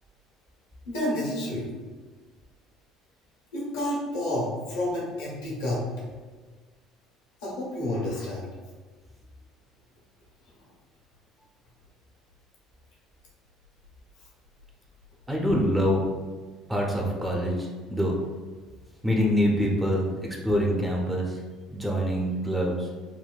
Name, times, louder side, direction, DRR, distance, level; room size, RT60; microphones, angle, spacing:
voice 1, 0.9-1.7 3.5-5.8 7.4-8.4, left 1 dB, 85° left, -6 dB, 1.2 m, -29 dB
voice 2, 15.3-16.1 16.7-18.2 19.0-20.1 20.4-21.4 21.7-22.9, equal, 10° right, -1 dB, 0.6 m, -25 dB
3.5 x 2.1 x 2.3 m, 1.4 s
hypercardioid pair, 75°, 0 cm